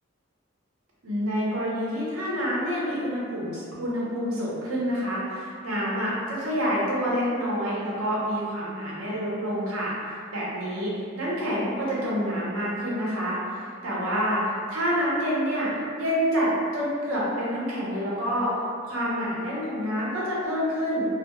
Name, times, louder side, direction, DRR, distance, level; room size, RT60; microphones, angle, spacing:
voice 1, 1.0-9.9 10.3-10.9 11.2-14.4 14.7-15.7 16.0-18.5 18.8-21.1, equal, 90° right, -6 dB, 0.7 m, -27 dB
2.2 x 2.0 x 2.9 m, 2.2 s
head